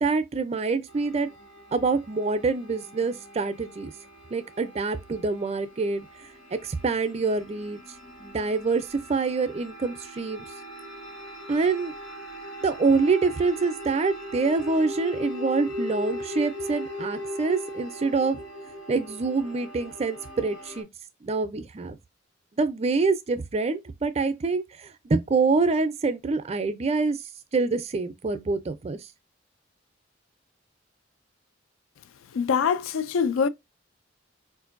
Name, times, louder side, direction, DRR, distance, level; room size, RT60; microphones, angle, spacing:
voice 1, 0.0-1.3 1.7-3.9 4.3-6.1 6.5-7.8 8.2-10.5 11.5-11.9 12.6-18.4 18.9-20.9 21.2-22.0 22.6-24.6 25.1-27.2 27.5-29.0, right 4 dB, 30° right, 0.4 m, -26 dB
sound 1, 0.9-20.8, equal, 70° left, 1.3 m, -39 dB
voice 2, 32.3-33.5, left 6 dB, 90° left, 0.4 m, -24 dB
4.3 x 2.6 x 2.5 m
head